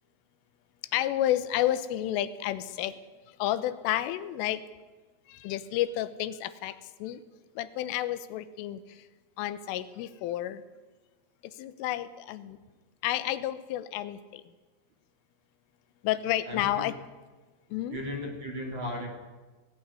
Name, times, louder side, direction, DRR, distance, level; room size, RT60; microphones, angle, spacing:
voice 1, 0.9-2.9 3.4-4.6 5.3-7.2 7.6-8.8 9.4-10.6 11.6-12.6 13.0-14.4 16.0-16.9 17.7-18.0, left 13 dB, 90° left, 13 dB, 3.6 m, -30 dB
voice 2, 16.4-16.9 17.9-19.1, left 1 dB, 35° right, 2 dB, 2.4 m, -36 dB
19.0 x 17.0 x 9.7 m, 1.3 s
omnidirectional pair, 5.6 m